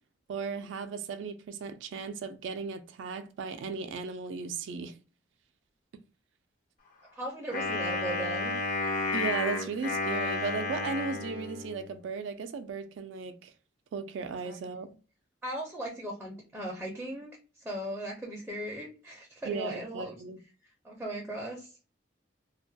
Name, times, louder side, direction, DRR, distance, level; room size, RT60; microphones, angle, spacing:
voice 1, 0.3-4.9 9.1-13.5 13.9-14.9 19.4-20.4, right 5 dB, 80° right, 0.3 m, -36 dB
voice 2, 7.1-8.6 14.4-14.6 15.4-17.3 17.6-20.2 20.8-21.7, right 1 dB, 5° right, 0.5 m, -37 dB
Wind instrument woodwind instrument, 7.5-12.0, left 3 dB, 50° left, 0.7 m, -32 dB
2.3 x 2.2 x 2.6 m
head